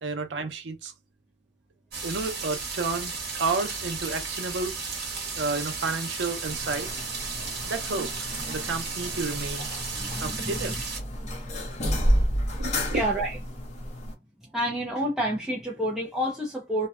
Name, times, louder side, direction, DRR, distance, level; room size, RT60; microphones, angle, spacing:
voice 1, 0.0-0.9 2.0-3.1 3.4-6.9 7.7-8.1 8.5-9.7 10.2-10.8 12.5-13.0, right 4 dB, 85° right, 0.6 m, -31 dB
sound 1, 1.9-11.0, right 4 dB, 65° right, 1.1 m, -34 dB
sound 2, 6.5-14.1, equal, 40° left, 0.8 m, -30 dB
voice 2, 9.9-10.6 11.2-11.3 12.9-13.4 14.5-16.9, equal, ahead, 0.5 m, -29 dB
2.7 x 2.1 x 2.3 m
head